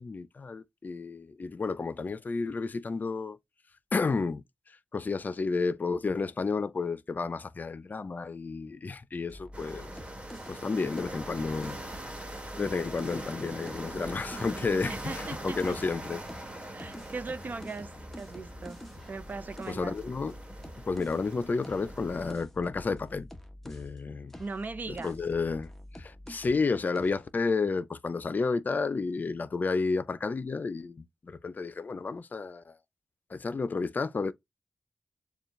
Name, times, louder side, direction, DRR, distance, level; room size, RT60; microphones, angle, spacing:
voice 1, 0.0-3.4 3.9-4.4 4.9-9.9 10.5-11.8 12.6-16.2 19.7-20.3 20.9-23.3 23.6-24.3 25.0-25.7 26.0-32.8 33.3-34.3, left 4 dB, 50° left, 0.6 m, -31 dB
sound 1, 9.3-13.3 13.6-16.0 16.3-24.0 24.3-26.7 27.0-27.3, left 1 dB, 5° left, 0.9 m, -47 dB
sound 2, 9.5-22.3, right 1 dB, 30° right, 1.5 m, -42 dB
voice 2, 14.8-15.8 16.7-17.9 18.2-18.8 19.1-20.0 24.4-25.2, right 3 dB, 50° right, 0.6 m, -39 dB
7.1 x 2.4 x 3.2 m
wide cardioid pair, 90°, 4 cm